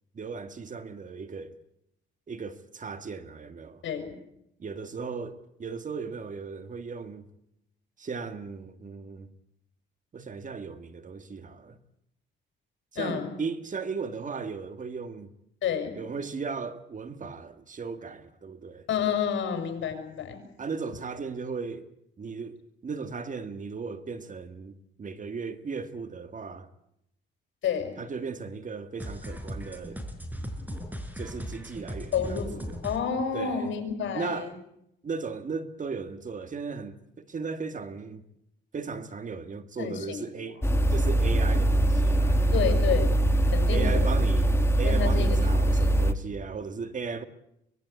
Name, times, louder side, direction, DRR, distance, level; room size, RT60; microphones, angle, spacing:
voice 1, 0.1-1.5 2.3-3.8 4.6-7.3 8.0-9.3 10.1-11.8 12.9-15.3 16.0-18.8 20.6-21.9 22.2-26.7 28.0-30.0 31.2-32.8 33.3-33.7 34.1-34.5 35.0-38.2 38.7-42.7 43.7-47.2, right 5 dB, 40° right, 1.9 m, -36 dB
voice 2, 12.9-13.3 15.6-16.0 18.9-20.4 27.6-27.9 32.1-34.5 39.8-40.2 42.5-43.2 43.5-44.1 44.8-45.4 45.8-45.9, left 7 dB, 70° left, 6.1 m, -30 dB
sound 1, 29.0-33.0, equal, 10° right, 4.9 m, -37 dB
sound 2, 40.6-46.1, right 1 dB, 10° left, 1.4 m, -22 dB
24.0 x 21.0 x 8.4 m
cardioid pair, 90°, 20 cm